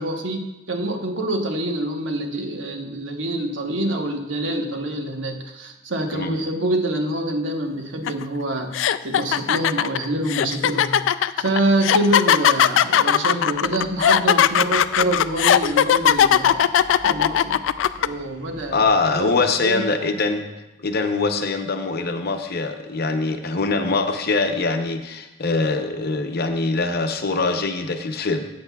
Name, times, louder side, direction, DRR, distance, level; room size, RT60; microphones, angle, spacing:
voice 1, 0.0-11.0 11.4-16.7 17.0-17.6 18.0-18.8 19.1-19.8, right 1 dB, 75° right, 4 dB, 1.1 m, -26 dB
sound 1, 8.1-8.2 8.7-18.1, left 9 dB, 75° left, 0.3 m, -18 dB
sound 2, 13.5-19.3, left 1 dB, 25° right, 1.5 m, -47 dB
voice 2, 18.7-20.4 20.8-28.5, left 3 dB, 55° left, 6 dB, 0.7 m, -23 dB
14.0 x 8.8 x 2.3 m, 0.99 s
head